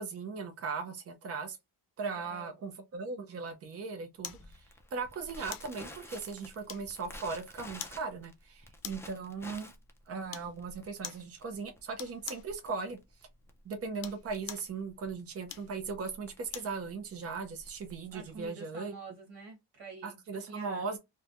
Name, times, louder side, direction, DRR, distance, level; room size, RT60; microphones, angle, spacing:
voice 1, 0.0-1.6 2.0-4.7 4.9-9.7 10.1-13.0 13.6-18.9 20.0-21.0, right 4 dB, 35° right, 0.6 m, -38 dB
voice 2, 2.0-2.6 8.8-9.1 18.1-20.9, right 3 dB, 65° right, 1.3 m, -48 dB
sound 1, 4.2-4.5 5.5-5.8 6.7-7.1 7.8-8.0 8.8-9.2 10.3-10.5 11.0-11.3 12.0-12.5 13.9-14.7 15.5-16.8 17.2-17.3, left 9 dB, 55° left, 0.6 m, -43 dB
Crackle, 4.3-18.5, left 1 dB, 5° left, 0.4 m, -51 dB
3.1 x 2.2 x 2.5 m
cardioid pair, 140°, 42 cm